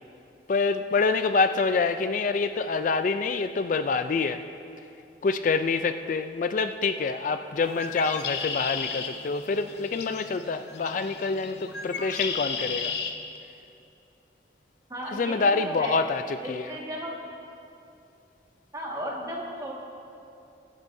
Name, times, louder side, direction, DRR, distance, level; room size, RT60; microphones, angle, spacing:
voice 1, 0.5-4.4 5.2-12.9 15.1-16.7, left 4 dB, 45° left, 9 dB, 0.3 m, -26 dB
Bird, 7.6-13.1, left 5 dB, 70° left, 0.8 m, -34 dB
voice 2, 14.9-16.0 16.4-17.2 18.7-19.7, equal, 20° right, -3 dB, 1.7 m, -35 dB
22.5 x 9.9 x 2.7 m, 2.7 s
head